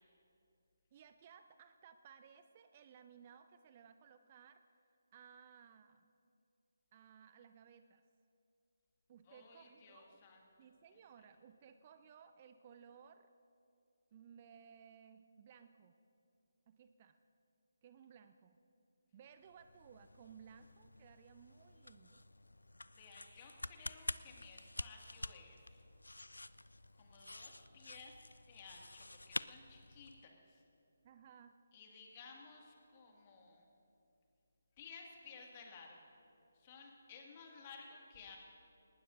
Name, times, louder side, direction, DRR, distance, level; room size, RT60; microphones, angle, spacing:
voice 1, 0.9-4.6 5.1-6.1 6.9-8.0 9.1-10.2 10.6-13.3 14.1-16.0 16.7-17.2 17.8-18.6 19.1-22.2 31.0-31.6, right 7 dB, 30° right, 10 dB, 0.5 m, -60 dB
voice 2, 9.3-10.4 10.9-11.0 22.9-25.8 27.0-30.6 31.7-33.7 34.8-36.0 36.6-38.4, left 5 dB, 30° left, 0 dB, 2.1 m, -56 dB
sound 1, 19.5-30.3, left 2 dB, 80° left, 0.3 m, -49 dB
19.0 x 19.0 x 2.7 m, 2.7 s
figure-of-eight pair, 150°, 0 cm